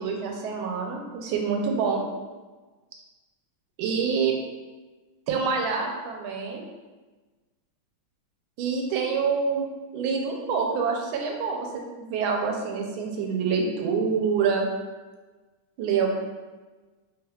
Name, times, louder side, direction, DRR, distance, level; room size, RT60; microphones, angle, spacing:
voice 1, 0.0-2.0 3.8-4.3 5.3-6.6 8.6-9.6 9.9-11.7 12.0-14.7 15.8-16.2, right 5 dB, 85° right, 1 dB, 1.4 m, -26 dB
3.4 x 3.1 x 2.3 m, 1.3 s
omnidirectional pair, 2.2 m